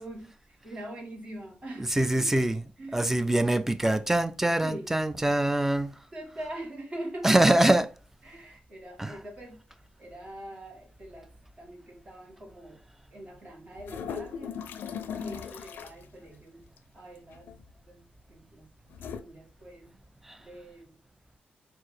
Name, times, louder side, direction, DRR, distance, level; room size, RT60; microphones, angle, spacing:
voice 1, 0.0-2.5 2.8-3.3 4.6-4.9 6.1-7.6 8.2-9.6 10.0-11.3 11.6-12.8 13.1-16.7 16.9-17.6 17.9-20.0 20.4-21.0, right 1 dB, 40° right, 1.8 m, -43 dB
voice 2, 2.0-2.6 2.9-5.9 7.2-7.9 9.0-9.1, right 1 dB, 10° right, 0.4 m, -23 dB
sound 1, 13.7-16.0 17.3-17.7 18.9-19.2, left 7 dB, 85° left, 0.4 m, -38 dB
4.3 x 2.6 x 4.2 m
cardioid pair, 85°, 3 cm